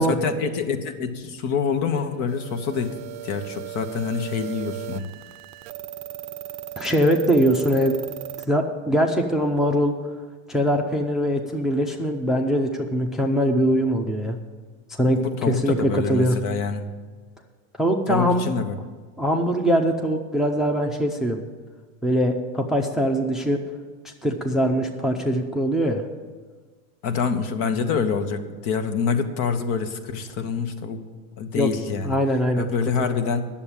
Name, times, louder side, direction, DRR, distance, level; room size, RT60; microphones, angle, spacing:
voice 1, 0.0-3.0 3.2-5.1 15.1-16.9 18.1-18.8 27.0-31.0 31.4-32.2 32.6-33.4, left 6 dB, 50° left, 8 dB, 1.2 m, -26 dB
sound 1, 2.3-8.5, right 13 dB, 55° right, 0.6 m, -37 dB
voice 2, 6.8-8.0 8.5-9.9 10.5-14.4 14.9-16.4 17.8-18.5 19.2-21.4 22.0-23.6 24.0-26.0 31.5-31.7 32.0-32.7 33.0-33.2, equal, ahead, 3 dB, 0.6 m, -22 dB
9.7 x 7.2 x 8.9 m, 1.5 s
supercardioid pair, 120°, 41 cm